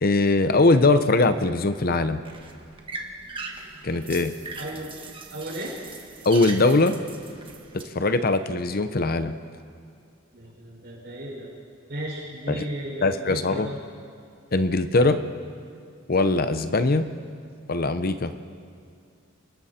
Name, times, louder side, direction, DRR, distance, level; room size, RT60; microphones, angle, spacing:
voice 1, 0.0-2.2 3.8-4.3 6.2-6.9 7.9-9.3 12.5-12.6 13.0-13.7 14.5-15.2 16.1-17.0 17.7-18.3, left 2 dB, 45° left, 10 dB, 0.8 m, -21 dB
sound 1, 1.8-7.8, right 3 dB, 25° right, 1.7 m, -40 dB
voice 2, 4.6-4.9 5.3-5.8 10.3-11.5 11.9-13.8, right 1 dB, 55° right, -4 dB, 6.3 m, -35 dB
29.5 x 20.0 x 4.4 m, 2.3 s
head